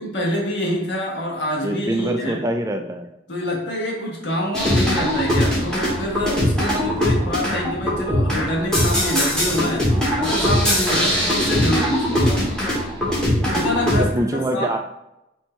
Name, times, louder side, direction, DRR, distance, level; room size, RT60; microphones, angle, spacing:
voice 1, 0.0-2.4 3.3-12.4 13.5-14.1 14.3-14.7, equal, 70° left, -2 dB, 1.3 m, -26 dB
voice 2, 1.6-3.1 11.0-11.3 14.0-14.8, right 1 dB, 15° right, 4 dB, 0.3 m, -25 dB
sound 1, 4.5-14.0, equal, 5° left, 1.0 m, -21 dB
4.4 x 2.7 x 4.3 m, 0.87 s
head